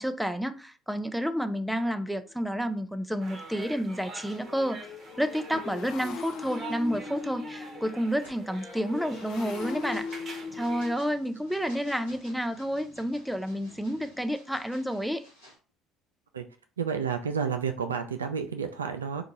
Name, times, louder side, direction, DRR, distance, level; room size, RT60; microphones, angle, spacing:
voice 1, 0.0-4.8 5.2-10.1 10.3-15.2, equal, ahead, 0.4 m, -30 dB
Motorcycle, 2.3-2.5 2.7-14.3, left 5 dB, 60° left, 0.4 m, -42 dB
sound 1, 3.2-10.9, right 3 dB, 40° right, 0.9 m, -46 dB
sound 2, 7.1-7.4 7.9-15.6, equal, 85° left, 1.1 m, -55 dB
voice 2, 16.8-19.2, right 6 dB, 80° right, 0.3 m, -30 dB
2.8 x 2.3 x 3.8 m
figure-of-eight pair, 55°, 0 cm